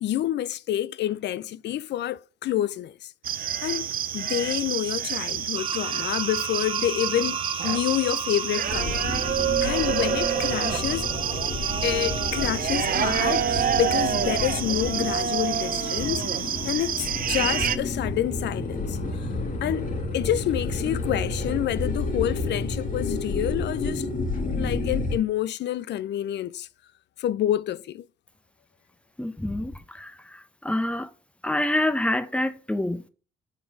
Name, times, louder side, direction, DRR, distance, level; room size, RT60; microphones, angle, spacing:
voice 1, 0.0-3.1 3.6-3.9 4.1-7.4 7.6-9.1 9.6-11.1 11.8-16.3 16.6-19.3 19.6-19.9 20.1-24.1 24.4-26.7 27.2-28.0, left 12 dB, 60° left, 0.4 m, -28 dB
sound 1, 3.2-17.8, right 9 dB, 45° right, 0.5 m, -27 dB
sound 2, 5.5-12.5, right 5 dB, 30° right, 1.0 m, -35 dB
sound 3, 8.7-25.2, left 3 dB, 40° left, 1.8 m, -31 dB
voice 2, 29.2-31.1 31.4-33.1, left 1 dB, 5° left, 0.7 m, -27 dB
7.3 x 3.8 x 4.6 m
cardioid pair, 90°, 20 cm